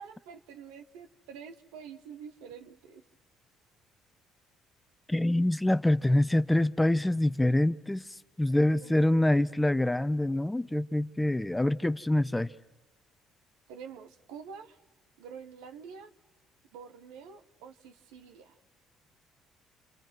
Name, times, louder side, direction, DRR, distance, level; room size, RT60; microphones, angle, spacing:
voice 1, 0.0-3.0 8.8-9.2 13.7-14.8 15.2-16.1 16.7-18.6, right 6 dB, 80° right, 7 dB, 1.2 m, -47 dB
voice 2, 5.1-8.0 8.4-12.5, left 1 dB, 10° left, 14 dB, 0.8 m, -25 dB
29.0 x 26.0 x 6.1 m, 1.0 s
hypercardioid pair, 60°, 0 cm